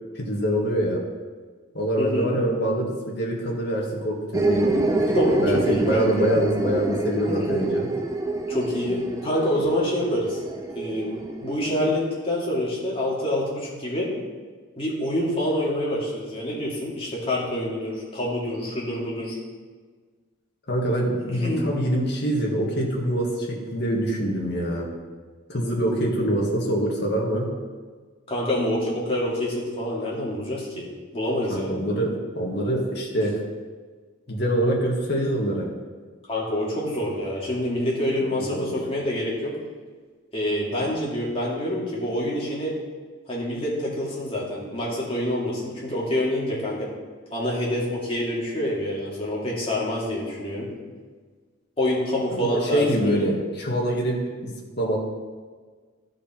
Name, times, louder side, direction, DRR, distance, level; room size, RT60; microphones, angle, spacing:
voice 1, 0.2-1.0 1.7-5.0 5.4-7.9 20.7-24.9 25.5-27.5 31.5-33.4 34.3-35.7 38.3-38.8 52.3-55.0, right 1 dB, 55° left, -2 dB, 1.9 m, -25 dB
voice 2, 2.0-2.3 5.1-6.3 7.3-7.6 8.5-10.4 10.7-14.1 14.8-19.4 21.3-21.6 28.3-31.8 36.3-39.5 40.3-42.7 43.3-46.9 47.3-50.7 51.8-53.2, left 1 dB, 25° left, -5 dB, 2.4 m, -27 dB
sound 1, 4.3-11.9, right 2 dB, 15° right, 0.6 m, -27 dB
14.0 x 5.1 x 4.5 m, 1.5 s
head